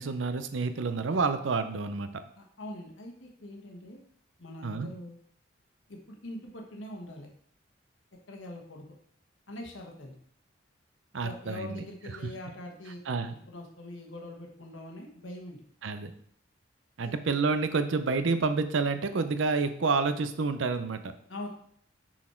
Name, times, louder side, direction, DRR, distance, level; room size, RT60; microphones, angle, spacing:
voice 1, 0.0-2.1 4.6-4.9 11.1-11.8 13.1-13.4 15.8-16.1 17.0-21.1, right 4 dB, 75° right, 10 dB, 0.6 m, -29 dB
voice 2, 2.4-4.0 4.4-5.2 5.9-7.3 8.3-8.9 9.5-10.2 11.2-15.6 17.0-17.2 21.3-21.5, left 1 dB, 80° left, 1 dB, 1.3 m, -43 dB
6.1 x 4.2 x 4.4 m, 0.62 s
head